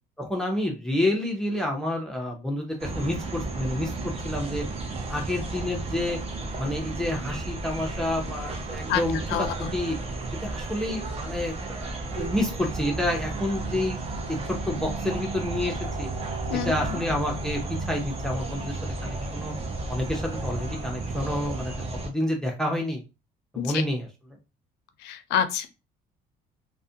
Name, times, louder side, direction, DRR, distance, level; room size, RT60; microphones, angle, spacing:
voice 1, 0.2-4.6 5.1-6.2 6.6-10.0 10.4-14.0 14.3-16.1 16.5-19.5 19.9-21.8 22.0-23.0 23.5-24.1, left 1 dB, 5° left, 1 dB, 0.6 m, -29 dB
sound 1, 2.8-22.1, right 2 dB, 35° right, 0.6 m, -33 dB
voice 2, 9.3-9.7 16.5-17.0 23.6-23.8 25.0-25.7, left 9 dB, 85° left, 10 dB, 0.4 m, -28 dB
2.4 x 2.1 x 2.7 m, 0.28 s
cardioid pair, 110°, 17 cm